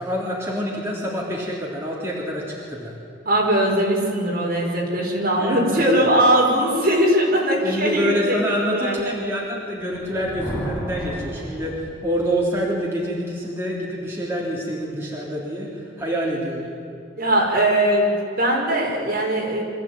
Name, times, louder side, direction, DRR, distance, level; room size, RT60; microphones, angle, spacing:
voice 1, 0.0-2.9 5.4-6.1 7.6-16.7, equal, 15° right, -4 dB, 3.3 m, -26 dB
voice 2, 3.3-8.4 8.7-9.1 17.2-19.6, right 1 dB, 50° right, -2 dB, 5.7 m, -20 dB
Thunder, 9.8-12.4, equal, 15° left, 7.0 m, -33 dB
24.5 x 15.0 x 9.1 m, 2.6 s
head